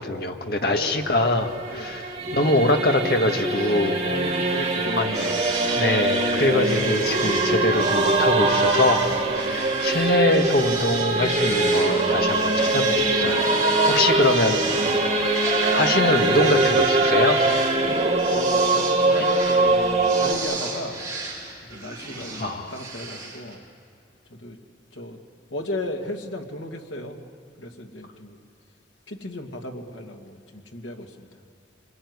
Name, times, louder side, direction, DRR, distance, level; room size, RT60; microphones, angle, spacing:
voice 1, 0.0-4.0 4.9-5.3 5.8-9.0 9.3-14.9 15.7-17.4 22.4-22.7, left 1 dB, 55° left, 4 dB, 1.7 m, -23 dB
voice 2, 0.6-1.0 1.7-2.0 4.0-5.0 5.8-6.0 9.2-9.7 13.7-14.3 14.9-15.1 17.4-21.0 21.6-23.6 24.3-24.6 24.9-25.2 25.5-27.2 27.6-28.4 29.1-31.3, left 1 dB, 90° left, 2 dB, 2.2 m, -36 dB
Singing / Musical instrument, 1.0-20.3, right 2 dB, 35° right, 2.0 m, -22 dB
sound 1, 5.1-23.5, right 3 dB, 15° right, 4.8 m, -35 dB
27.0 x 21.5 x 9.6 m, 2.4 s
head